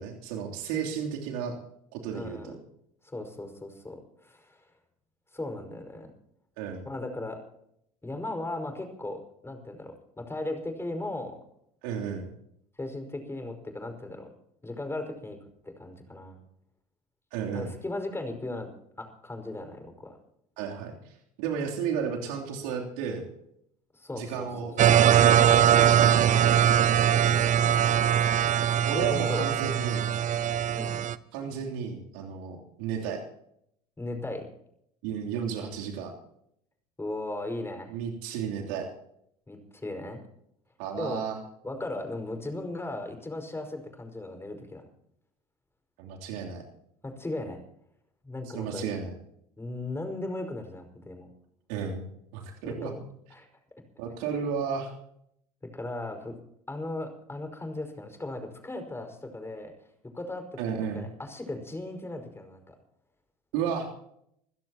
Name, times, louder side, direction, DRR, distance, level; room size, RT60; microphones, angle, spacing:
voice 1, 0.0-1.5 1.9-2.5 6.6-6.8 11.8-12.3 17.3-17.7 20.6-23.2 24.1-26.6 28.8-30.2 31.3-33.2 35.0-36.1 37.9-38.9 40.8-41.4 46.0-46.6 48.5-49.1 51.7-52.0 52.3-52.9 54.0-54.9 60.6-61.1 63.5-63.9, right 7 dB, 70° right, 0 dB, 3.2 m, -33 dB
voice 2, 2.1-2.6 3.0-4.6 5.3-6.1 6.9-7.4 8.0-11.4 12.8-14.3 14.6-15.4 15.6-16.4 17.5-18.7 19.0-20.2 23.9-24.9 27.1-27.4 28.9-29.5 30.7-31.0 34.0-34.5 37.0-37.9 39.5-40.2 41.0-41.2 41.6-44.8 47.0-47.6 48.2-48.9 49.6-51.3 52.6-53.0 53.3-53.5 55.7-56.3 56.7-59.7 60.1-62.7, left 2 dB, 15° left, 5 dB, 5.2 m, -37 dB
sound 1, 24.8-31.1, right 9 dB, 40° right, 0.9 m, -21 dB
27.0 x 16.0 x 2.9 m, 0.72 s
hypercardioid pair, 70°, 20 cm